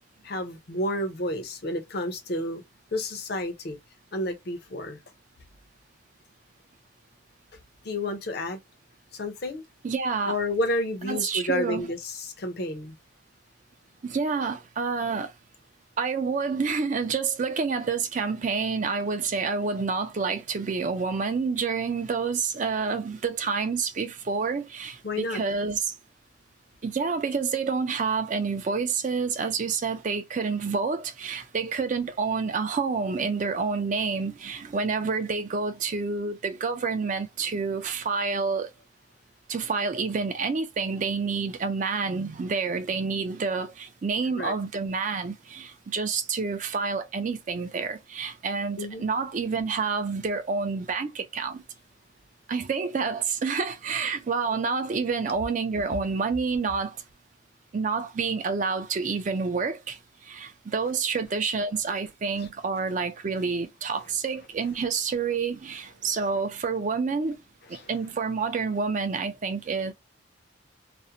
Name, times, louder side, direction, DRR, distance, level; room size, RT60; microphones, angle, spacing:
voice 1, 0.2-2.6 2.9-3.8 4.1-5.0 7.8-8.6 9.1-9.6 10.3-13.0 25.0-25.4 44.4-44.5 48.8-49.1 62.4-62.5 67.7-67.9, left 1 dB, 50° left, 0.6 m, -30 dB
voice 2, 9.8-10.4 11.0-11.9 14.0-15.3 16.0-25.9 26.8-38.7 39.5-51.6 52.5-57.0 57.7-67.4 67.7-69.9, right 5 dB, 40° right, 0.4 m, -28 dB
2.5 x 2.1 x 2.7 m
head